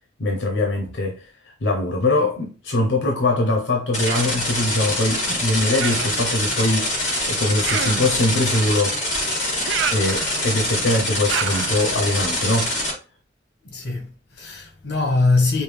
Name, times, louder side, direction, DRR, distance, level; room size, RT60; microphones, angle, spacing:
voice 1, 0.2-1.3 1.6-9.0 9.9-12.8, left 2 dB, 90° left, 0.8 m, -22 dB
sound 1, 3.9-12.9, left 1 dB, 40° left, 2.2 m, -24 dB
Human voice, 4.1-4.4 5.8-6.3 7.6-8.2 9.7-10.6 11.3-11.8, right 7 dB, 85° right, 0.4 m, -28 dB
voice 2, 13.6-15.6, left 3 dB, 70° left, 1.2 m, -22 dB
5.2 x 2.2 x 3.3 m
head